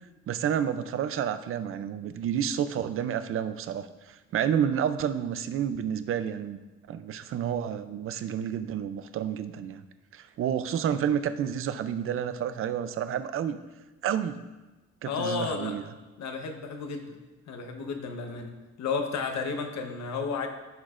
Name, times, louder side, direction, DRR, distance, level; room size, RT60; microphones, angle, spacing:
voice 1, 0.3-3.9 4.3-6.6 6.9-9.8 10.1-13.6 14.0-14.4 15.0-15.8, right 9 dB, 45° right, 11 dB, 0.5 m, -30 dB
voice 2, 15.0-15.8 16.2-17.2 17.5-20.5, left 5 dB, 60° left, 4 dB, 1.0 m, -32 dB
15.0 x 6.2 x 2.5 m, 1.1 s
cardioid pair, 170°, 31 cm